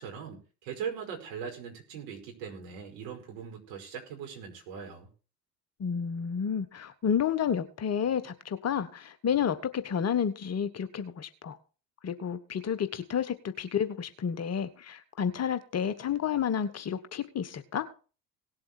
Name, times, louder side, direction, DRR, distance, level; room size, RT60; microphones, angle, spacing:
voice 1, 0.0-5.1, right 7 dB, 60° right, 1 dB, 5.2 m, -40 dB
voice 2, 5.8-11.6 12.0-17.9, left 8 dB, 30° left, 11 dB, 1.2 m, -30 dB
18.0 x 7.7 x 4.4 m, 0.36 s
figure-of-eight pair, 65°, 49 cm